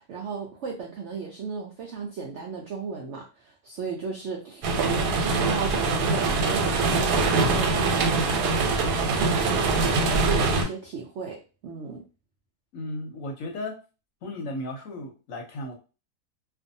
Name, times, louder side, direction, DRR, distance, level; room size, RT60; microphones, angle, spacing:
voice 1, 0.0-12.0, right 5 dB, 75° right, -1 dB, 0.6 m, -35 dB
sound 1, 4.6-10.6, right 3 dB, 90° right, 1.2 m, -23 dB
voice 2, 12.7-13.7 14.2-15.7, left 1 dB, 65° left, 1 dB, 0.9 m, -35 dB
2.5 x 2.3 x 2.6 m, 0.33 s
omnidirectional pair, 1.7 m